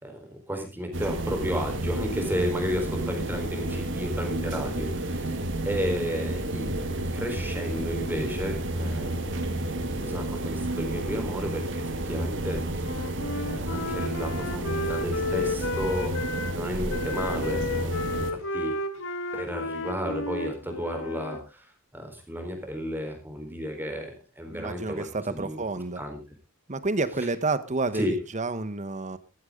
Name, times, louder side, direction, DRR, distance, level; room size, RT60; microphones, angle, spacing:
voice 1, 0.0-5.3 5.7-9.3 10.0-12.9 13.7-16.1 16.5-18.7 19.3-21.7 21.9-25.6 26.0-26.2 27.9-28.2, equal, 10° right, 4.1 m, -33 dB
sound 1, 0.9-18.3, right 1 dB, 55° right, 2.1 m, -31 dB
Wind instrument woodwind instrument, 12.8-16.6 16.9-21.4, left 2 dB, 60° left, 1.8 m, -32 dB
voice 2, 24.5-26.0 26.7-29.2, right 3 dB, 35° right, 1.1 m, -29 dB
15.0 x 14.0 x 3.8 m
head